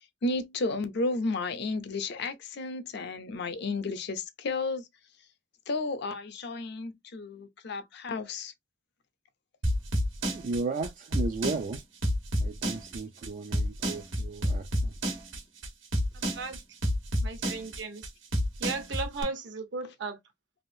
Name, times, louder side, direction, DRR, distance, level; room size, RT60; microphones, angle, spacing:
voice 1, 0.2-4.9 5.7-8.5, left 3 dB, 60° left, 0.5 m, -32 dB
sound 1, 9.6-19.2, equal, 90° right, 1.3 m, -29 dB
voice 2, 10.3-11.8 12.4-14.9, right 3 dB, 40° right, 0.3 m, -34 dB
voice 3, 16.1-16.6 17.2-18.1 18.6-20.1, right 4 dB, 65° right, 0.9 m, -36 dB
3.4 x 2.5 x 2.6 m
head